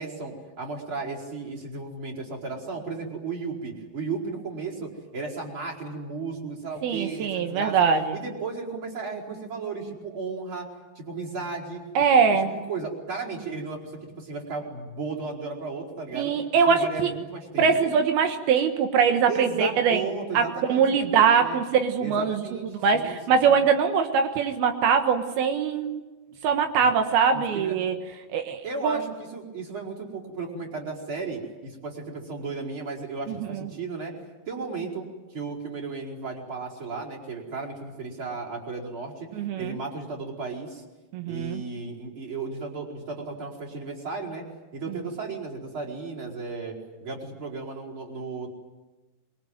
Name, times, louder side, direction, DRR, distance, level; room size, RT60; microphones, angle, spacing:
voice 1, 0.0-7.8 8.1-10.7 11.0-11.8 12.5-16.3 16.6-17.9 19.3-21.6 22.0-22.7 22.9-23.6 26.8-26.9 27.3-27.8 28.6-34.1 34.5-35.1 35.3-39.3 39.6-40.8 41.3-44.4 44.7-48.5, right 4 dB, 35° right, -2 dB, 5.4 m, -35 dB
voice 2, 6.8-8.2 12.0-12.5 16.1-17.1 17.6-20.0 20.4-22.5 22.8-26.0 26.4-28.0 28.3-29.0 33.4-33.7 39.4-39.8 41.1-41.6, right 6 dB, 85° right, 5 dB, 3.4 m, -22 dB
24.5 x 23.5 x 9.4 m, 1.2 s
omnidirectional pair, 4.3 m